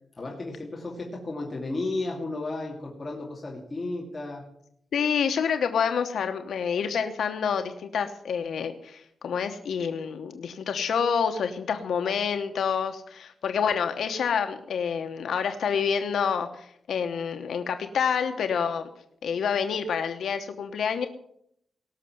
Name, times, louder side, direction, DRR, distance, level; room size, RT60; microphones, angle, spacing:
voice 1, 0.2-4.5, left 2 dB, 20° left, -3 dB, 2.5 m, -33 dB
voice 2, 4.9-18.9 19.2-21.1, left 7 dB, 90° left, 6 dB, 1.0 m, -28 dB
18.5 x 6.7 x 9.4 m, 0.73 s
wide cardioid pair, 170°, 0 cm